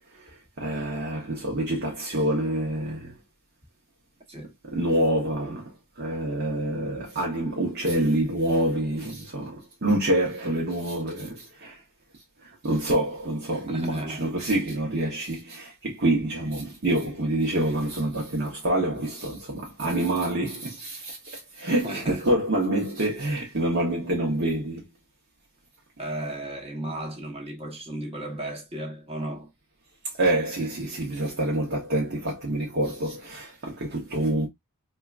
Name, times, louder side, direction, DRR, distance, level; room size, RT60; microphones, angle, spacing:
voice 1, 0.1-3.2 4.6-11.8 12.4-24.9 30.2-34.5, right 1 dB, 50° right, 0.9 m, -27 dB
voice 2, 13.7-14.3 21.8-22.3 26.0-29.5, right 1 dB, 25° right, 1.1 m, -35 dB
4.3 x 2.3 x 2.4 m
head